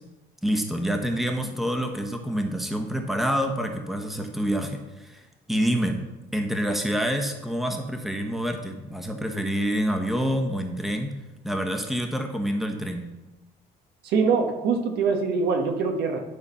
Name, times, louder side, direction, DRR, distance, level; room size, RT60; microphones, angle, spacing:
voice 1, 0.4-6.1 6.3-11.1 11.4-13.1, equal, ahead, 4 dB, 1.1 m, -27 dB
voice 2, 14.0-16.2, right 5 dB, 75° right, 5 dB, 1.2 m, -23 dB
11.0 x 4.3 x 5.6 m, 1.1 s
cardioid pair, 110°, 17 cm